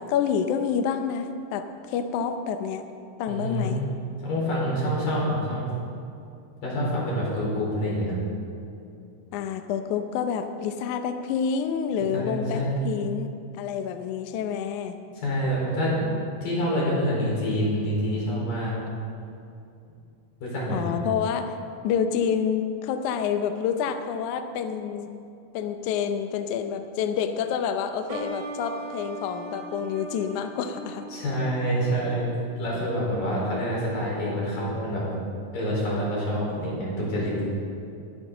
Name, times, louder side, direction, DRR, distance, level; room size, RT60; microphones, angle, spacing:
voice 1, 0.0-2.9 3.2-3.8 9.3-15.0 20.7-21.6 21.8-25.1 25.5-31.1, left 7 dB, 80° left, 7 dB, 1.8 m, -28 dB
voice 2, 3.3-3.8 4.2-5.6 6.6-8.2 12.1-12.8 15.2-16.0 16.4-18.7 20.4-20.8 31.1-32.3 32.6-35.0 35.5-37.3, equal, 65° left, -5 dB, 5.9 m, -27 dB
sound 1, 28.1-33.5, right 3 dB, 65° right, 1.7 m, -40 dB
22.0 x 11.5 x 3.9 m, 2.6 s
omnidirectional pair, 4.3 m